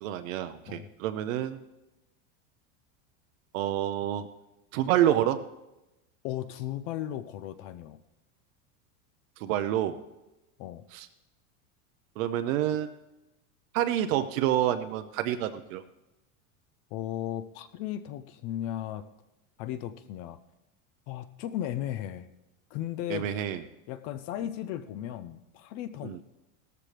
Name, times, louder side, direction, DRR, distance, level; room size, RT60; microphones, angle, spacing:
voice 1, 0.0-1.6 3.5-4.2 4.7-5.4 9.4-10.0 10.9-11.1 12.2-12.9 13.7-15.8 23.1-23.6 26.0-26.2, right 11 dB, 70° right, 9 dB, 0.7 m, -28 dB
voice 2, 6.2-8.0 10.6-10.9 16.9-19.1 19.6-20.4 21.1-22.3 22.7-23.4 23.9-26.2, left 12 dB, 40° left, 12 dB, 0.4 m, -36 dB
17.0 x 13.5 x 3.3 m, 0.99 s
supercardioid pair, 160°, 41 cm